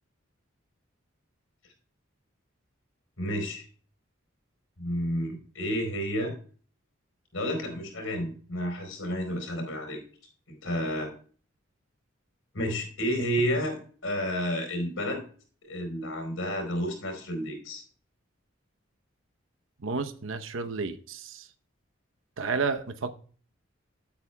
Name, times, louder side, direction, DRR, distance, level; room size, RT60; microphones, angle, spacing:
voice 1, 3.2-3.6 4.8-6.3 7.3-10.0 10.6-11.1 12.5-15.2 15.6-17.8, equal, 85° left, 4.6 m, -31 dB
voice 2, 19.8-21.5 22.4-23.1, right 4 dB, 80° right, 0.8 m, -31 dB
15.5 x 8.5 x 2.3 m
head